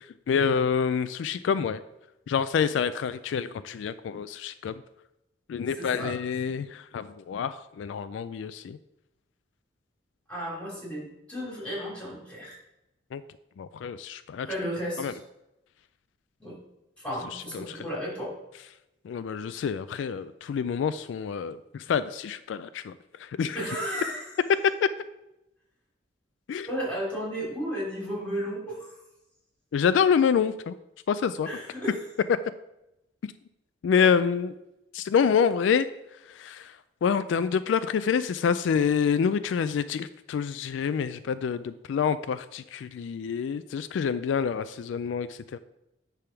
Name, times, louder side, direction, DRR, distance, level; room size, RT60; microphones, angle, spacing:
voice 1, 0.0-1.8 2.3-4.8 5.5-8.8 13.1-13.2 13.6-14.5 15.0-15.2 17.3-17.9 19.0-23.6 24.6-24.9 26.5-26.7 29.7-30.8 31.1-31.5 32.3-32.4 33.8-34.5 34.9-45.6, left 6 dB, 75° left, 13 dB, 0.3 m, -27 dB
voice 2, 5.8-6.1 10.3-12.6 14.4-15.0 16.4-16.6 17.0-18.3 23.5-24.2 26.7-29.0 31.4-31.9 33.9-34.1, equal, 5° left, -5 dB, 3.0 m, -33 dB
10.0 x 3.5 x 5.8 m, 0.90 s
head